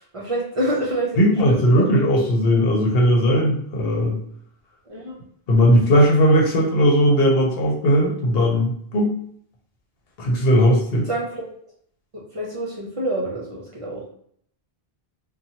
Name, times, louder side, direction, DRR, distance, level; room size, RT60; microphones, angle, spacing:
voice 1, 0.0-2.1 4.9-5.1 11.0-11.5 12.1-14.0, right 1 dB, 45° right, -3 dB, 0.5 m, -27 dB
voice 2, 1.2-4.2 5.5-9.2 10.2-11.1, equal, 75° left, -1 dB, 0.9 m, -18 dB
2.8 x 2.2 x 2.7 m, 0.63 s
omnidirectional pair, 1.0 m